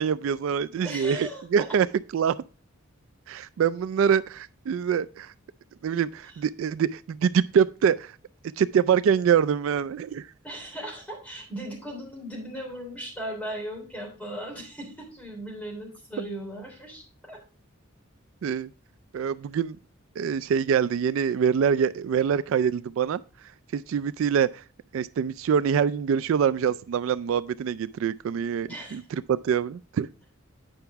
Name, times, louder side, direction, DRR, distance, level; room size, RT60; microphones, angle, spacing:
voice 1, 0.0-1.9 2.1-2.4 3.3-5.3 5.8-8.2 8.6-10.3 18.4-18.7 19.1-19.8 20.2-23.2 23.7-24.6 24.9-30.1, right 7 dB, 70° right, 0.3 m, -25 dB
voice 2, 0.8-1.7 10.4-17.4 28.7-29.0, right 1 dB, 5° left, 3.4 m, -37 dB
8.9 x 5.7 x 3.4 m
head